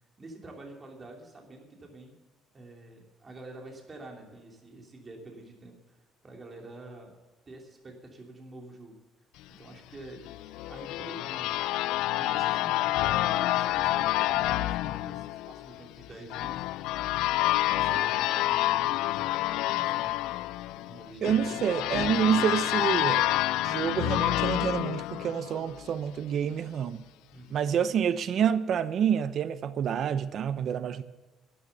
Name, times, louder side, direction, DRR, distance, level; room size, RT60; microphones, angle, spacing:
voice 1, 0.2-2.1 2.5-6.0 6.2-7.1 7.5-9.0 9.6-10.2 10.5-11.8 12.2-20.1 20.7-21.6 22.0-22.7 27.3-27.6, right 2 dB, 25° right, 3.1 m, -47 dB
sound 1, 10.3-25.9, left 16 dB, 90° left, 0.4 m, -28 dB
voice 2, 21.2-23.3 23.6-27.0 27.5-31.0, right 8 dB, 50° right, 0.8 m, -28 dB
13.0 x 9.6 x 6.8 m
cardioid pair, 145°, 0 cm